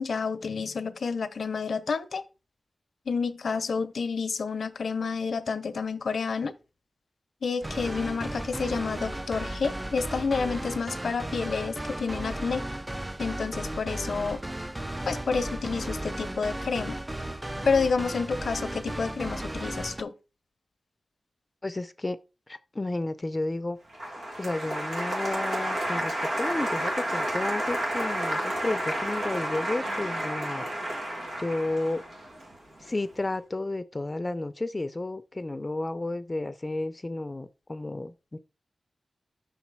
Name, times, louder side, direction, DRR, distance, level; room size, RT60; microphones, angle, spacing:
voice 1, 0.0-2.2 3.1-6.5 7.4-12.6 13.2-14.4 15.1-17.0 17.7-20.1, left 5 dB, 80° left, 0.6 m, -29 dB
sound 1, 7.6-20.0, right 1 dB, 20° right, 0.4 m, -35 dB
voice 2, 21.6-22.2 22.5-23.8 24.4-30.7 31.4-32.0 32.8-38.4, left 2 dB, 35° left, 0.5 m, -32 dB
Applause, 23.9-33.0, right 1 dB, 90° right, 1.9 m, -31 dB
5.7 x 4.1 x 4.6 m
cardioid pair, 50°, 0 cm